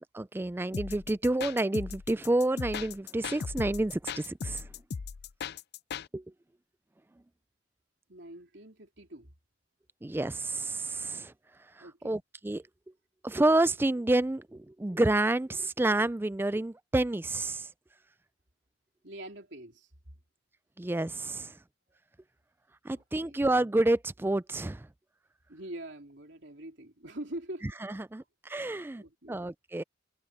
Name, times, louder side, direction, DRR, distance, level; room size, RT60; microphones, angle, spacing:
voice 1, 0.1-4.7 6.1-6.2 10.0-11.3 12.0-12.6 13.2-17.7 20.8-21.5 22.8-24.9 28.1-29.0 29.3-29.8, right 2 dB, 10° right, 0.3 m, -29 dB
sound 1, 0.7-6.1, left 6 dB, 60° left, 0.5 m, -38 dB
voice 2, 8.1-9.3 11.8-12.2 19.0-19.9 22.9-23.4 25.5-27.7 29.0-29.4, right 1 dB, 65° right, 3.6 m, -44 dB
head